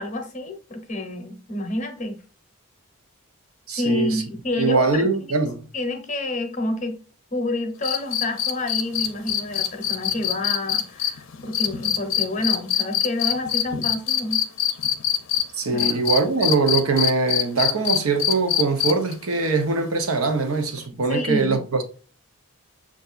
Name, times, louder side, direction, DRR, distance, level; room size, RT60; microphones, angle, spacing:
voice 1, 0.0-2.2 3.7-5.1 5.7-7.0 7.3-14.4 15.7-16.0 21.1-21.6, left 2 dB, 35° left, 0.8 m, -28 dB
voice 2, 3.7-4.2 4.6-5.7 15.5-21.8, right 4 dB, 80° right, 0.8 m, -22 dB
sound 1, 7.8-15.4 15.8-19.1 20.8-20.9, left 10 dB, 60° left, 0.6 m, -23 dB
6.6 x 2.5 x 2.4 m
head